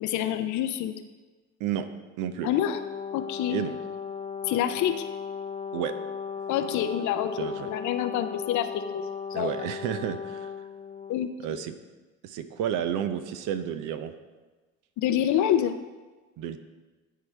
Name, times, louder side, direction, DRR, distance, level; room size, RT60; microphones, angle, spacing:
voice 1, 0.0-1.0 2.4-2.8 3.1-3.6 4.5-5.1 6.5-9.0 9.3-9.5 11.1-11.6 15.0-15.8, left 10 dB, 55° left, 10 dB, 0.7 m, -27 dB
voice 2, 2.2-2.5 3.5-3.8 5.7-5.9 7.4-7.7 9.3-10.5 11.4-11.7 12.2-14.1 16.4-16.6, right 9 dB, 60° right, 10 dB, 0.7 m, -31 dB
Brass instrument, 2.5-11.2, left 6 dB, 20° left, 0.8 m, -36 dB
12.5 x 4.6 x 3.3 m, 1.3 s
hypercardioid pair, 65°, 36 cm